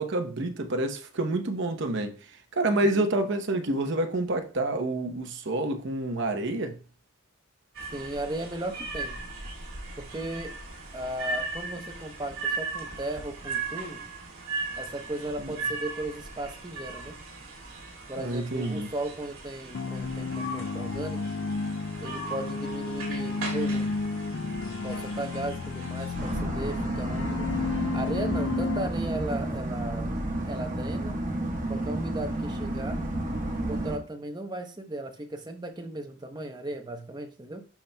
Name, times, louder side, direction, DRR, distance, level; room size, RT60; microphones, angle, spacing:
voice 1, 0.0-2.2 2.5-6.8 15.4-15.5 18.2-18.9, right 2 dB, 55° right, 0.9 m, -28 dB
voice 2, 2.7-3.2 7.9-9.3 10.0-10.6 10.9-14.1 14.8-17.2 18.1-21.2 22.0-24.0 24.8-27.5 27.9-30.2 30.5-31.2 31.7-33.0 33.6-37.7, right 1 dB, 20° right, 0.8 m, -36 dB
sound 1, 7.7-26.4, right 3 dB, 85° right, 2.2 m, -38 dB
sound 2, 19.7-28.9, left 4 dB, 60° left, 0.4 m, -32 dB
sound 3, 26.1-34.0, right 1 dB, 40° right, 1.2 m, -31 dB
11.5 x 4.2 x 2.3 m
head